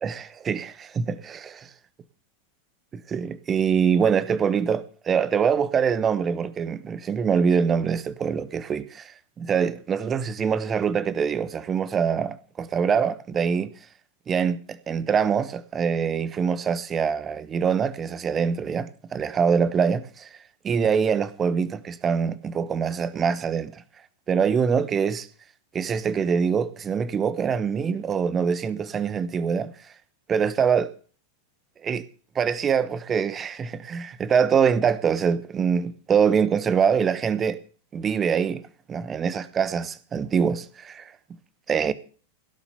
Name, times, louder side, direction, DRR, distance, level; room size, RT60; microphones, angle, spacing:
voice 1, 0.0-1.7 2.9-13.7 14.3-20.3 20.6-23.7 24.3-25.3 25.7-29.7 30.3-30.9 31.8-32.0 32.3-37.6 37.9-38.6 38.9-41.1 41.7-41.9, right 6 dB, 25° right, 1.1 m, -24 dB
17.0 x 7.2 x 6.7 m
figure-of-eight pair, 90°, 0 cm